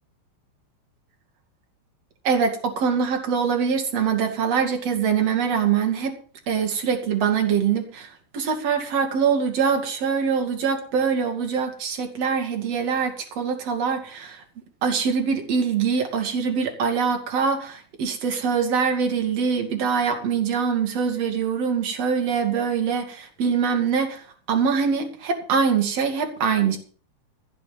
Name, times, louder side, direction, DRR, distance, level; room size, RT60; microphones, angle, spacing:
voice 1, 2.2-6.1 6.5-8.1 8.3-14.4 14.8-26.8, right 6 dB, 45° right, 3 dB, 3.4 m, -23 dB
15.0 x 7.7 x 7.7 m, 0.42 s
omnidirectional pair, 4.3 m